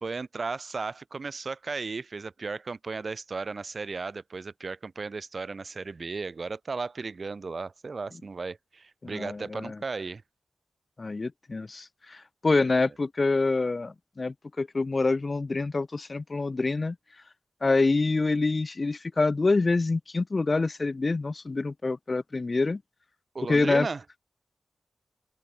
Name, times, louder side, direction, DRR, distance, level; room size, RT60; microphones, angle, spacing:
voice 1, 0.0-10.2 23.3-24.0, right 4 dB, 55° right, 1.8 m, -35 dB
voice 2, 9.0-9.8 11.0-17.0 17.6-22.8 23.5-23.9, left 3 dB, 45° left, 1.2 m, -26 dB
cardioid pair, 45°, 0 cm